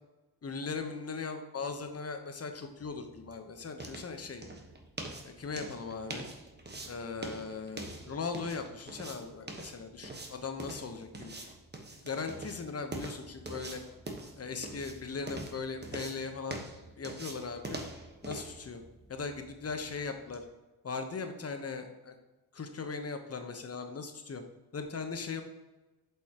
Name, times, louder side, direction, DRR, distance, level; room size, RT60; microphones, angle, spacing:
voice 1, 0.4-4.4 5.2-6.3 6.9-11.4 12.0-13.8 14.4-16.6 17.0-17.8 18.2-18.8 19.1-20.4 20.8-22.1 22.5-24.4 24.7-25.4, left 4 dB, 35° left, 6 dB, 1.0 m, -39 dB
sound 1, 2.7-20.5, right 2 dB, 25° right, 1.3 m, -45 dB
7.7 x 5.4 x 3.0 m, 1.1 s
cardioid pair, 70°, 40 cm